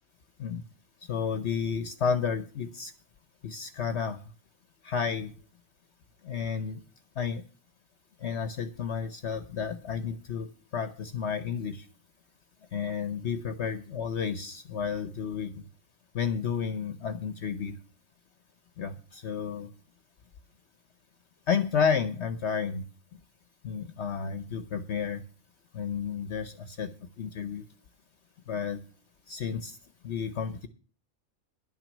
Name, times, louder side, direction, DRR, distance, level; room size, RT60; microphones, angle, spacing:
voice 1, 1.1-2.9 3.4-4.2 4.8-5.3 6.2-6.8 7.2-7.4 8.2-10.5 10.7-11.8 12.7-15.5 16.1-17.8 18.8-19.7 21.5-22.8 23.6-25.2 25.7-26.9 27.2-27.6 28.5-28.8 29.3-29.8 30.0-30.7, left 6 dB, 60° left, 10 dB, 1.1 m, -31 dB
11.0 x 6.1 x 8.2 m, 0.39 s
omnidirectional pair, 1.4 m